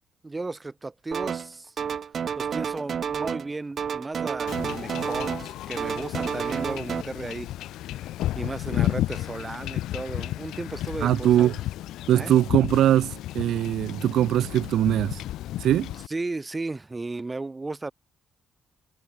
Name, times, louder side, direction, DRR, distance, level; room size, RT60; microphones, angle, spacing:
voice 1, 0.2-1.7 2.4-7.5 7.9-8.1 8.3-11.6 12.1-12.3 16.1-17.9, right 3 dB, 20° right, 2.0 m, -35 dB
sound 1, 1.1-1.5 1.8-3.5 3.8-5.5 5.8-7.0, right 7 dB, 50° right, 0.7 m, -30 dB
Wind / Ocean / Boat Water vehicle, 4.5-16.1, left 14 dB, 85° left, 0.3 m, -33 dB
voice 2, 11.0-11.5 12.1-15.2 15.6-15.9, right 12 dB, 75° right, 0.3 m, -21 dB
cardioid pair, 90°, 0 cm